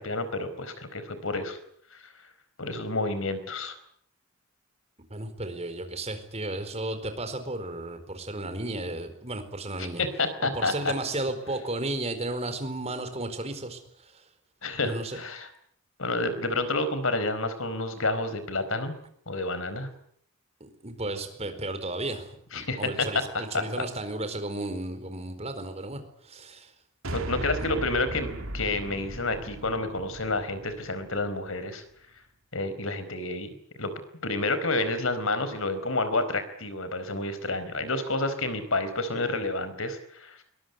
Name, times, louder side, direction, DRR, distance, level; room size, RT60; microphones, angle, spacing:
voice 1, 0.0-1.6 1.9-2.0 2.6-3.8 9.8-10.9 14.6-15.5 16.0-18.9 19.3-19.9 22.5-23.8 27.1-31.8 32.5-33.9 34.2-40.4, left 2 dB, 70° left, 12 dB, 4.5 m, -29 dB
voice 2, 5.1-10.0 10.4-14.2 14.8-15.2 20.6-26.0 26.2-26.7 27.6-27.7, right 2 dB, 30° right, 9 dB, 4.4 m, -34 dB
sound 1, 27.0-31.5, right 1 dB, 70° right, 2.8 m, -37 dB
22.5 x 22.0 x 9.5 m, 0.66 s
head